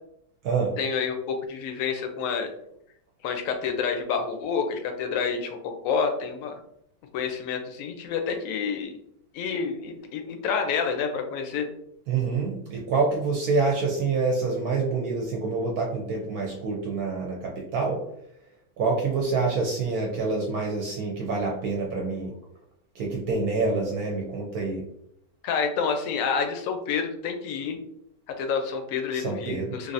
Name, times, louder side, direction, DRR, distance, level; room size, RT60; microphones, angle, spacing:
voice 1, 0.8-2.5 3.2-6.6 7.1-8.9 9.3-11.7 25.4-27.8 28.3-29.9, left 6 dB, 70° left, 5 dB, 0.8 m, -28 dB
voice 2, 12.1-18.0 18.8-22.3 23.0-24.8 29.1-29.7, right 4 dB, 70° right, -1 dB, 1.0 m, -27 dB
3.3 x 2.6 x 2.5 m, 0.73 s
omnidirectional pair, 1.7 m